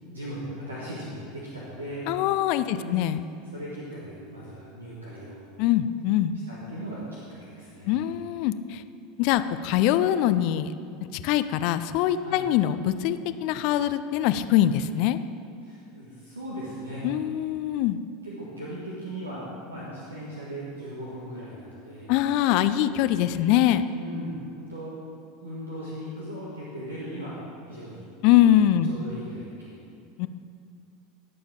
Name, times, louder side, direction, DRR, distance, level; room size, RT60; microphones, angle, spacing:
voice 1, 0.0-2.1 2.7-3.0 3.4-5.4 6.5-8.1 12.1-12.4 15.6-17.0 18.2-22.1 23.8-24.9 25.4-27.4 27.7-28.1 28.8-29.9, equal, 80° right, -7 dB, 1.6 m, -38 dB
voice 2, 2.1-3.2 5.6-6.4 7.9-8.8 9.2-10.7 11.2-15.2 17.0-18.0 22.1-23.8 28.2-29.0 30.2-30.3, left 12 dB, 50° left, 12 dB, 0.4 m, -23 dB
17.5 x 6.9 x 3.8 m, 2.4 s
figure-of-eight pair, 80°, 0 cm